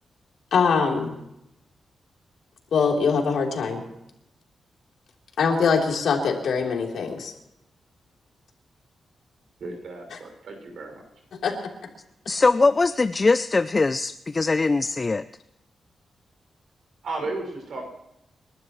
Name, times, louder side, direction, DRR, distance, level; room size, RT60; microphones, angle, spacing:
voice 1, 0.5-1.2 2.7-3.8 5.4-7.3 10.1-10.2 11.4-11.5, left 5 dB, 80° left, 0 dB, 3.5 m, -23 dB
voice 2, 9.6-11.0 17.0-17.9, right 2 dB, 70° right, 3 dB, 6.0 m, -34 dB
voice 3, 12.3-15.2, left 3 dB, 25° left, 12 dB, 0.4 m, -21 dB
28.5 x 12.0 x 3.2 m, 0.85 s
wide cardioid pair, 135°, 0 cm